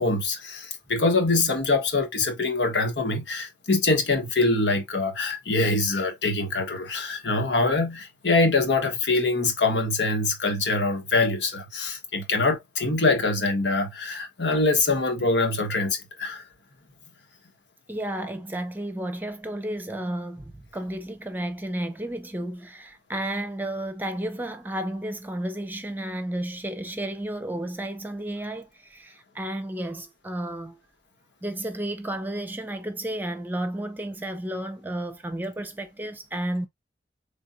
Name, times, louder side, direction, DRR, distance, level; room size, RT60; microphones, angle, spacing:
voice 1, 0.0-16.4, left 3 dB, 80° left, 1.4 m, -24 dB
voice 2, 17.9-30.8 31.4-36.7, right 1 dB, 10° right, 0.6 m, -32 dB
5.1 x 3.5 x 2.7 m
head